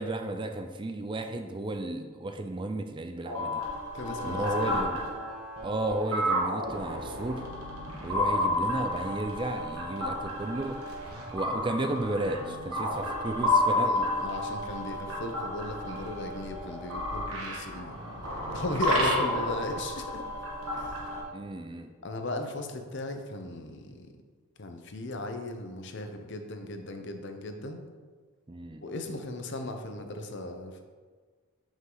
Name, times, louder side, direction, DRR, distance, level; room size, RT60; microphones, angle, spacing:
voice 1, 0.0-3.6 4.2-5.0 5.6-7.4 8.0-10.8 11.3-13.9 21.3-21.9 28.5-28.8, right 2 dB, 20° right, 6 dB, 0.4 m, -33 dB
sound 1, 3.2-21.2, left 1 dB, 85° right, 1.8 m, -31 dB
voice 2, 3.9-4.8 13.7-18.0 18.5-20.3 20.7-21.0 22.0-24.1 24.6-27.9 28.8-30.8, left 2 dB, 55° left, 5 dB, 0.7 m, -36 dB
8.1 x 5.4 x 3.9 m, 1.5 s
head